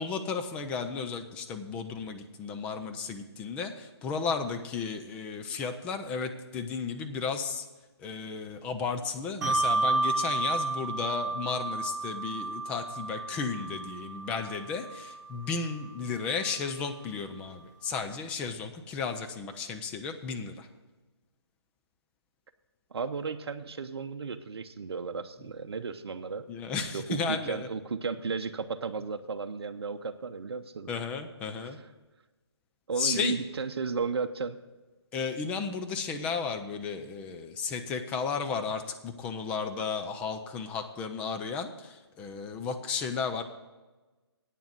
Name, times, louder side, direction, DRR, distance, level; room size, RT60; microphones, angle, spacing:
voice 1, 0.0-7.7 8.0-20.7 26.5-27.7 30.9-31.8 33.0-33.3 35.1-43.4, left 5 dB, 10° left, 6 dB, 0.4 m, -34 dB
Bell, 9.4-16.3, right 3 dB, 40° right, 1.7 m, -32 dB
voice 2, 22.9-26.5 26.9-30.9 31.6-31.7 32.9-34.6, right 5 dB, 65° right, 7 dB, 0.7 m, -34 dB
9.0 x 7.0 x 7.6 m, 1.2 s
figure-of-eight pair, 150°, 14 cm